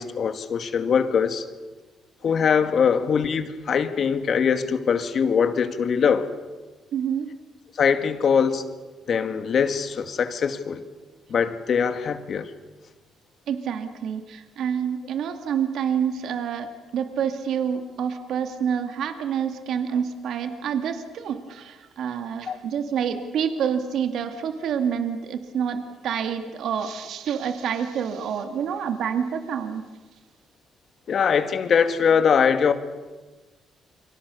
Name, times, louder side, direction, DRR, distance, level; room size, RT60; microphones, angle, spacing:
voice 1, 0.0-1.5 2.2-6.3 7.8-8.6 9.1-10.8 11.3-12.5 22.5-22.6 31.1-32.7, left 6 dB, 55° left, 2.2 m, -22 dB
voice 2, 6.9-7.3 13.5-29.9, right 7 dB, 75° right, 2.2 m, -28 dB
29.5 x 25.0 x 6.9 m
cardioid pair, 90°, 0 cm